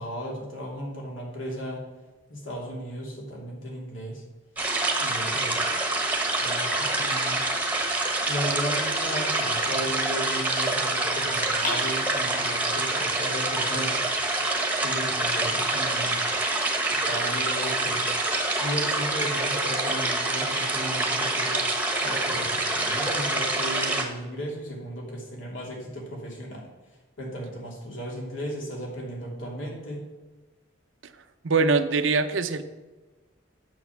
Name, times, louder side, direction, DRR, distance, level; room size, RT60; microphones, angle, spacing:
voice 1, 0.0-1.8 2.3-4.2 4.9-5.5 6.4-7.4 8.3-14.0 14.8-16.2 17.1-18.0 18.5-21.6 22.0-26.7 27.2-30.0, equal, 75° left, -1 dB, 2.7 m, -35 dB
sound 1, 4.6-24.0, right 2 dB, 10° right, 1.0 m, -26 dB
sound 2, 9.0-10.1 11.6-12.6, left 2 dB, 45° left, 4.0 m, -37 dB
voice 2, 31.4-32.6, right 4 dB, 70° right, 10 dB, 0.7 m, -22 dB
9.2 x 6.9 x 5.8 m, 1.2 s
head